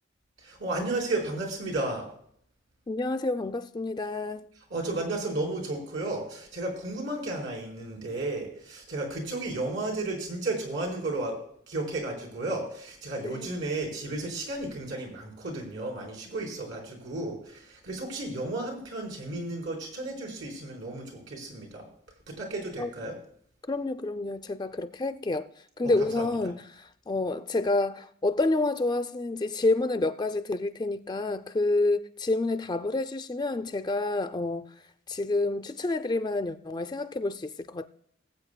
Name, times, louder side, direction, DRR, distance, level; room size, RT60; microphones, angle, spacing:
voice 1, 0.4-2.1 4.7-11.4 11.7-21.9 22.3-23.2 25.8-26.5, right 2 dB, 75° right, 4.3 m, -33 dB
voice 2, 2.9-4.5 13.2-13.5 22.8-22.9 23.7-25.5 25.8-34.7 35.1-37.9, left 2 dB, 20° left, 0.4 m, -28 dB
20.5 x 8.3 x 2.2 m
head